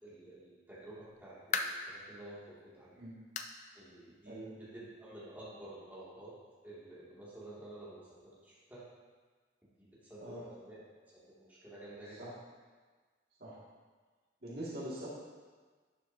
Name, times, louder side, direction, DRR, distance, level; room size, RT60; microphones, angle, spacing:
voice 1, 0.0-3.0 3.7-6.3 6.6-8.8 9.8-10.8 11.1-12.2, right 1 dB, 10° right, -9 dB, 2.5 m, -51 dB
sound 1, 0.9-2.0 2.5-2.6 3.3-3.6 3.9-4.0 4.5-4.6 5.7-5.8, left 5 dB, 40° left, 0.5 m, -37 dB
voice 2, 14.4-15.1, right 1 dB, 55° right, -7 dB, 2.3 m, -42 dB
11.0 x 7.2 x 2.9 m, 1.4 s
head